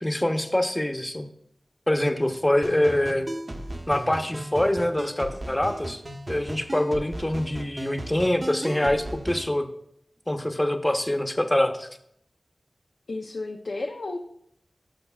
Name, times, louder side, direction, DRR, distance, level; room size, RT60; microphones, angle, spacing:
voice 1, 0.0-1.3 1.9-3.3 3.9-6.0 6.3-9.6 10.3-11.9, left 1 dB, 15° left, 6 dB, 0.9 m, -24 dB
sound 1, 2.6-9.5, right 1 dB, 45° right, 1.1 m, -36 dB
voice 2, 13.1-14.2, left 2 dB, 80° left, 0 dB, 0.7 m, -32 dB
16.5 x 6.5 x 2.4 m, 0.73 s
wide cardioid pair, 70°, 0 cm